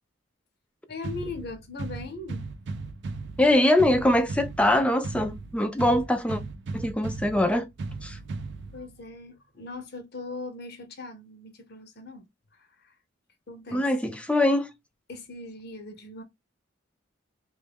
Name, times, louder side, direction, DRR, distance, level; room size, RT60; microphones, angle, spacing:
voice 1, 0.9-2.4 8.7-12.3 12.5-13.0 13.5-13.9 15.1-16.2, left 3 dB, 55° left, 0.7 m, -40 dB
sound 1, 1.0-9.0, right 3 dB, 60° right, 0.4 m, -37 dB
voice 2, 3.4-6.4 6.7-7.7 8.0-8.2 13.7-14.7, left 1 dB, 5° left, 0.4 m, -23 dB
3.1 x 2.3 x 3.3 m
head